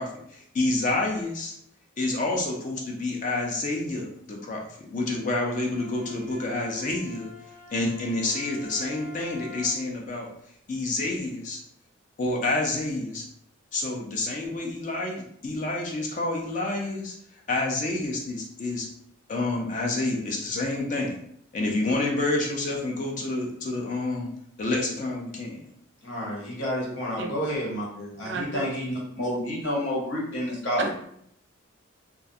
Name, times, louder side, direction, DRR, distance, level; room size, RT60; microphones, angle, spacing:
voice 1, 0.0-1.5 2.0-7.3 7.7-10.3 10.7-11.6 12.2-13.2 13.7-17.1 17.5-18.9 19.3-21.2 21.5-24.3 24.6-25.7, left 2 dB, 35° left, 0 dB, 0.4 m, -28 dB
Bowed string instrument, 5.7-10.0, left 3 dB, 90° left, 1.4 m, -43 dB
voice 2, 26.0-30.8, equal, 60° left, -4 dB, 0.9 m, -30 dB
voice 3, 28.2-28.7 30.8-31.0, right 4 dB, 55° right, 3 dB, 0.4 m, -32 dB
2.3 x 2.2 x 2.6 m, 0.70 s
head